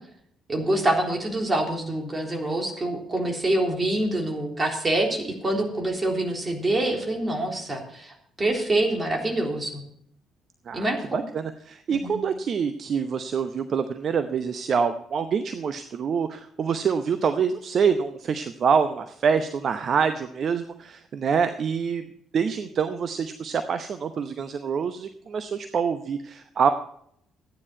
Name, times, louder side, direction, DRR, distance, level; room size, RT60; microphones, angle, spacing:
voice 1, 0.5-9.8 10.7-11.2 11.9-12.2, right 1 dB, 25° right, 1 dB, 3.6 m, -26 dB
voice 2, 10.7-22.0 22.3-26.7, right 6 dB, 45° right, 9 dB, 0.8 m, -26 dB
14.0 x 9.8 x 4.5 m, 0.69 s
figure-of-eight pair, 45°, 0 cm